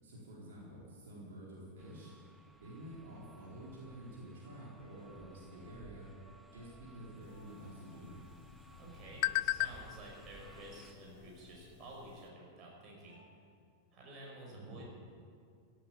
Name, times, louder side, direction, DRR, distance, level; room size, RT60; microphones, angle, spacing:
voice 1, 0.0-2.1 2.6-6.1 6.5-8.2 14.5-14.8, right 1 dB, 60° right, -6 dB, 4.3 m, -50 dB
sound 1, 1.8-10.9, right 2 dB, 5° right, 0.9 m, -60 dB
sound 2, 3.0-13.2, right 1 dB, 80° right, 5.5 m, -66 dB
sound 3, 7.2-12.3, left 18 dB, 45° left, 0.3 m, -40 dB
voice 2, 8.8-13.2 13.9-14.9, right 1 dB, 35° right, -2 dB, 5.4 m, -51 dB
16.0 x 9.4 x 9.0 m, 2.2 s
figure-of-eight pair, 90°, 0 cm